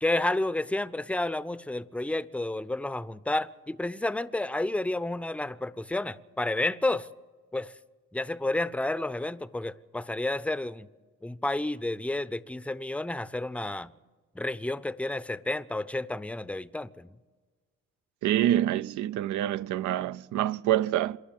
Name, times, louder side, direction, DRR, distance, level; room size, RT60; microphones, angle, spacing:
voice 1, 0.0-7.1 7.5-7.7 8.1-10.9 11.2-13.9 14.3-17.2, left 2 dB, 5° left, 0.6 m, -30 dB
voice 2, 18.2-21.2, right 12 dB, 75° right, 0.6 m, -26 dB
27.0 x 11.0 x 9.3 m
cardioid pair, 90°, 30 cm